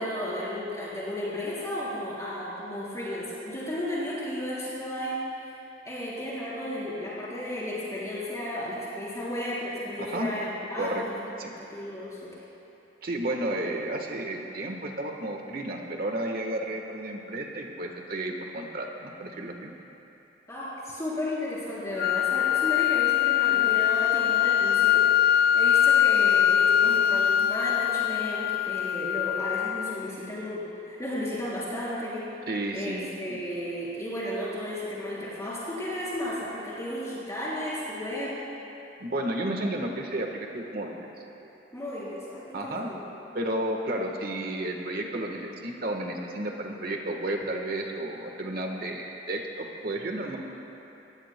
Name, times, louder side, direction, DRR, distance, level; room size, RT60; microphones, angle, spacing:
voice 1, 0.0-5.5 5.8-11.2 11.5-12.3 20.5-32.4 32.7-38.4 41.7-43.0, left 1 dB, 20° left, -9 dB, 3.8 m, -34 dB
voice 2, 13.0-19.7 32.5-33.4 39.0-41.1 41.4-41.5 42.5-42.9 43.3-50.4, right 1 dB, 55° right, 2 dB, 1.3 m, -32 dB
sound 1, 22.0-30.0, left 10 dB, 55° left, 0.4 m, -23 dB
24.5 x 17.5 x 2.2 m, 2.9 s
head